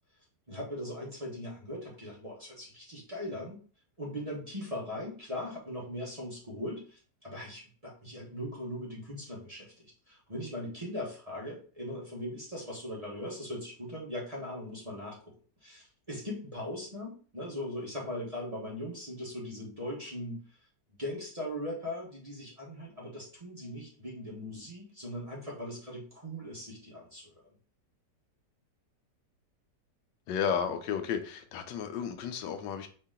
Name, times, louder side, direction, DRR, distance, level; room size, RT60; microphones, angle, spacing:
voice 1, 0.5-3.6 4.0-15.3 15.6-20.4 21.0-27.3, left 1 dB, 25° right, 1.1 m, -39 dB
voice 2, 30.3-32.9, left 7 dB, 80° left, 1.3 m, -33 dB
4.9 x 2.8 x 3.7 m
omnidirectional pair, 1.9 m